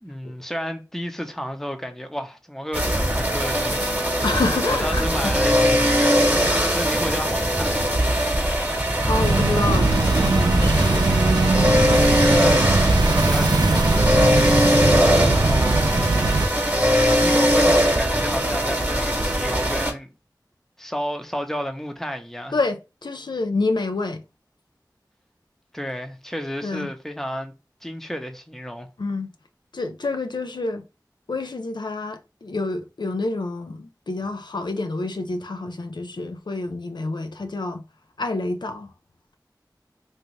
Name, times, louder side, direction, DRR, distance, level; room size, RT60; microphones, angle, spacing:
voice 1, 0.0-4.3 4.7-7.9 11.8-12.7 13.2-15.9 17.2-20.1 20.8-22.6 25.7-27.5 27.8-28.9, equal, 5° left, 0.7 m, -31 dB
sound 1, 2.7-19.9, equal, 25° right, 1.1 m, -21 dB
voice 2, 4.2-5.3 9.1-11.1 15.7-16.0 22.5-24.2 26.6-26.9 29.0-29.3 29.7-30.8 31.3-37.8 38.2-38.9, left 3 dB, 80° left, 0.4 m, -28 dB
sound 2, 9.0-16.5, right 3 dB, 70° right, 0.4 m, -20 dB
3.3 x 2.6 x 3.1 m
wide cardioid pair, 45°, 7 cm